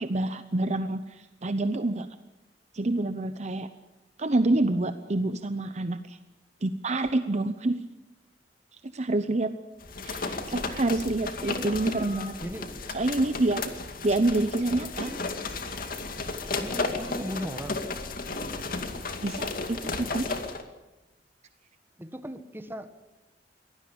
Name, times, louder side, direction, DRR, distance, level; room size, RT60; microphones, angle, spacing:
voice 1, 0.0-2.1 2.7-3.7 4.2-6.2 6.6-7.8 8.7-9.5 10.0-12.4 12.9-13.6 14.0-15.1 19.2-20.3, right 2 dB, 40° right, 10 dB, 0.8 m, -27 dB
Cat meows when it rains, 9.8-20.6, left 3 dB, 55° left, 2.4 m, -34 dB
voice 2, 16.6-17.8 22.0-23.0, equal, 15° right, 9 dB, 1.4 m, -37 dB
23.5 x 17.5 x 8.8 m, 1.0 s
head